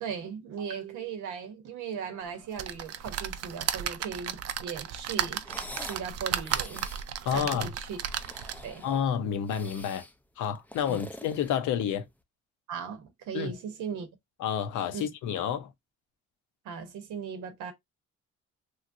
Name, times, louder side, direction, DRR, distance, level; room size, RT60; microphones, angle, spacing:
voice 1, 0.0-6.9 7.3-8.0 8.6-8.9 10.9-11.1 12.7-14.1 14.9-15.1 16.6-17.7, right 7 dB, 85° right, 0.9 m, -38 dB
sound 1, 2.6-8.8 9.3-9.4 9.7-9.8, right 10 dB, 55° right, 0.4 m, -34 dB
sound 2, 5.4-6.1 6.4-7.1 7.9-9.1 9.5-10.1 10.6-12.1, left 1 dB, 5° left, 0.4 m, -45 dB
voice 2, 7.3-7.7 8.8-10.0 10.4-12.1 13.3-13.5 14.4-15.7, left 8 dB, 80° left, 0.7 m, -29 dB
3.0 x 2.4 x 2.5 m
cardioid pair, 90°, 30 cm